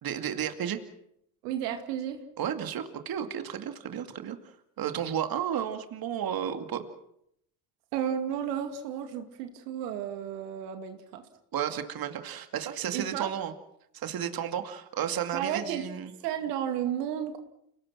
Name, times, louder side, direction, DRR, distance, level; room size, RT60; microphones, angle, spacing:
voice 1, 0.0-0.8 2.4-6.8 11.5-13.5 13.9-16.1, right 9 dB, 50° right, 7 dB, 2.4 m, -33 dB
voice 2, 1.4-2.2 7.9-11.2 12.9-13.3 15.3-15.8 16.2-17.4, right 9 dB, 80° right, 6 dB, 2.5 m, -32 dB
29.5 x 19.0 x 6.2 m, 0.74 s
hypercardioid pair, 65°, 47 cm